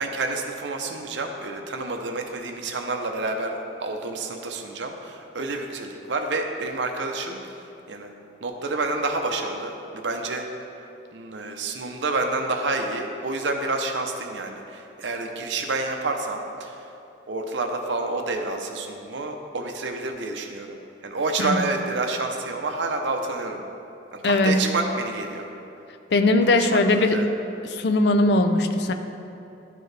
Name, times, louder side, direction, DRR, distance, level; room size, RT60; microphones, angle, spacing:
voice 1, 0.0-8.1 8.4-10.5 10.7-16.9 17.3-23.7 24.1-25.5 26.5-27.3, right 3 dB, 80° right, 3 dB, 0.7 m, -29 dB
voice 2, 24.2-24.7 26.1-27.2 27.7-28.9, left 2 dB, 65° left, 7 dB, 0.4 m, -20 dB
11.5 x 4.6 x 3.3 m, 2.8 s
head